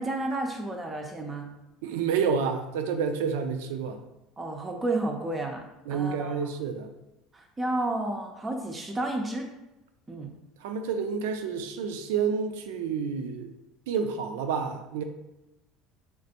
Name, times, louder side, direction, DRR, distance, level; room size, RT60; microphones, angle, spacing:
voice 1, 0.0-1.5 4.4-5.6 5.9-6.5 7.3-9.5 10.1-10.3, right 2 dB, 20° right, 2 dB, 0.4 m, -31 dB
voice 2, 1.8-4.0 5.9-6.9 10.6-13.5 13.9-15.0, right 6 dB, 90° right, 7 dB, 0.3 m, -29 dB
3.3 x 2.4 x 2.7 m, 0.93 s
supercardioid pair, 110°, 0 cm